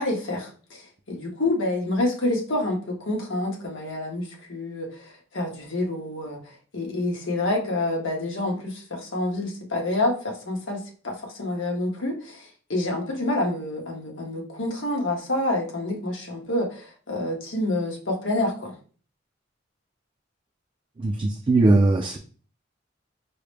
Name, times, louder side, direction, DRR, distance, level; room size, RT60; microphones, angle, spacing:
voice 1, 0.0-6.4 6.7-18.8, left 2 dB, 90° left, 0 dB, 1.1 m, -28 dB
voice 2, 21.0-22.2, right 2 dB, 25° right, 2 dB, 0.3 m, -20 dB
4.7 x 2.0 x 3.3 m, 0.41 s
head